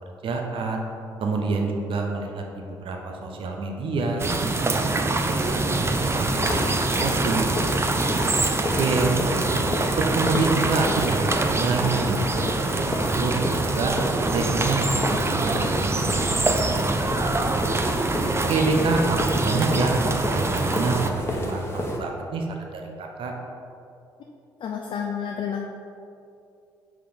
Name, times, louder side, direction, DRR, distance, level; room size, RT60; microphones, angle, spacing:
voice 1, 0.2-0.8 1.2-4.2 4.5-4.8 5.3-9.6 10.0-13.9 14.3-16.0 16.3-16.9 17.5-17.9 18.5-23.3, right 3 dB, 55° right, 2 dB, 0.9 m, -27 dB
sound 1, 4.2-21.1, right 2 dB, 25° right, 0.7 m, -24 dB
sound 2, 5.8-22.0, left 1 dB, 25° left, 1.3 m, -32 dB
voice 2, 24.6-25.6, left 7 dB, 50° left, 1 dB, 0.6 m, -30 dB
5.9 x 4.8 x 5.2 m, 2.6 s
hypercardioid pair, 45°, 10 cm